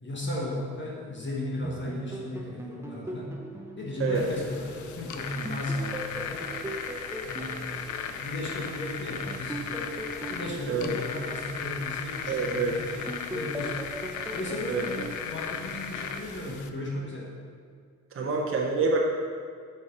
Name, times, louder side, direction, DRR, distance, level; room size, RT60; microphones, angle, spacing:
voice 1, 0.0-3.4 3.8-6.5 7.2-9.9 10.3-13.1 13.3-13.8 14.3-17.3, left 1 dB, 40° left, -3 dB, 1.4 m, -35 dB
sound 1, 1.6-5.0 5.4-8.7 9.3-12.6 13.1-16.3, right 1 dB, 10° right, 0.7 m, -40 dB
sound 2, 4.1-16.7, left 6 dB, 75° left, 0.6 m, -37 dB
voice 2, 12.3-12.7 14.7-14.8 18.1-19.0, right 4 dB, 45° right, 0 dB, 0.9 m, -26 dB
6.5 x 4.6 x 5.2 m, 2.1 s
cardioid pair, 90°, 30 cm